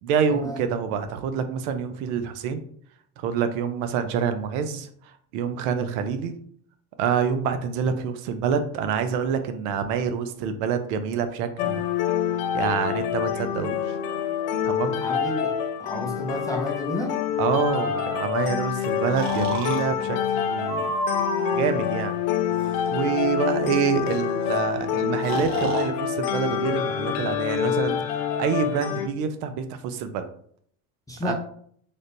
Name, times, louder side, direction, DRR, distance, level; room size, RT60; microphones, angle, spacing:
voice 1, 0.0-2.6 3.2-6.4 7.0-11.8 12.5-14.0 14.6-15.0 17.4-20.9 21.5-22.1 22.9-30.3 31.2-31.3, right 6 dB, 75° right, 9 dB, 0.6 m, -27 dB
sound 1, 11.6-29.1, left 9 dB, 80° left, 0.6 m, -27 dB
voice 2, 15.0-15.5 15.8-17.2 31.1-31.3, left 1 dB, 10° left, 0 dB, 0.4 m, -31 dB
Breathing, 17.7-18.5 19.2-19.8 20.7-21.6 22.5-22.9 24.1-24.2 24.4-24.6 25.2-25.9, right 2 dB, 35° right, 0.8 m, -31 dB
3.4 x 2.5 x 2.5 m, 0.62 s
supercardioid pair, 80°, 48 cm